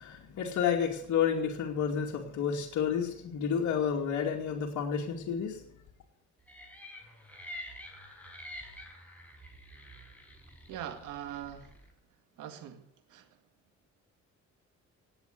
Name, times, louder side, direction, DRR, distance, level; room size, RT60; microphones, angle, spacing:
voice 1, 0.0-5.6, left 7 dB, 70° left, -1 dB, 2.5 m, -30 dB
sound 1, 6.5-11.9, equal, 5° left, 5.1 m, -48 dB
voice 2, 10.7-11.8 12.4-12.8 13.1-13.3, right 10 dB, 90° right, 8 dB, 2.0 m, -41 dB
18.5 x 8.2 x 7.8 m, 0.67 s
cardioid pair, 90°, 30 cm